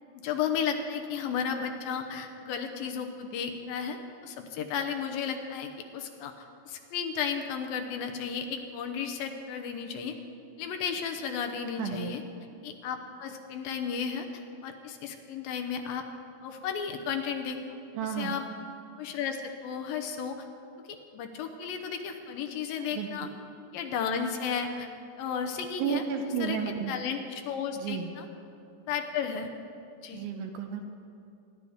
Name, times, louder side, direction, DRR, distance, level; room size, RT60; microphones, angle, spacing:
voice 1, 0.2-4.0 4.2-10.2 10.6-12.2 12.6-16.0 16.4-17.6 18.2-18.4 19.0-20.5 20.9-23.3 23.7-24.9 25.2-26.0 26.4-26.6 26.9-28.3 28.9-29.5 30.0-30.2, left 7 dB, 75° left, 5 dB, 2.3 m, -33 dB
voice 2, 11.8-12.2 18.0-18.3 22.9-23.3 25.8-26.9 27.8-28.1 30.1-30.8, right 8 dB, 75° right, 5 dB, 2.2 m, -32 dB
25.0 x 11.5 x 3.6 m, 2.6 s
omnidirectional pair, 4.7 m